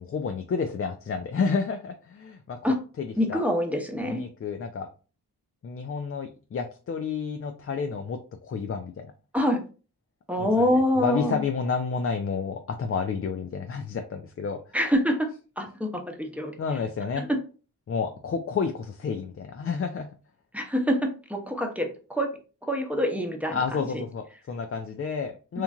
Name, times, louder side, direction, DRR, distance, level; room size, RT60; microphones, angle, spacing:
voice 1, 0.0-2.6 3.0-3.4 4.0-4.9 5.6-9.1 10.4-10.7 11.0-14.6 16.6-17.3 17.9-20.1 23.5-25.6, left 5 dB, 35° left, 6 dB, 0.4 m, -30 dB
voice 2, 3.2-4.2 9.3-9.6 10.3-11.4 14.7-15.3 15.6-16.5 17.2-17.3 20.5-21.0 21.3-22.3 22.7-23.6 25.5-25.6, equal, 5° right, 3 dB, 0.8 m, -25 dB
3.0 x 2.4 x 2.3 m, 0.35 s
cardioid pair, 45°, 39 cm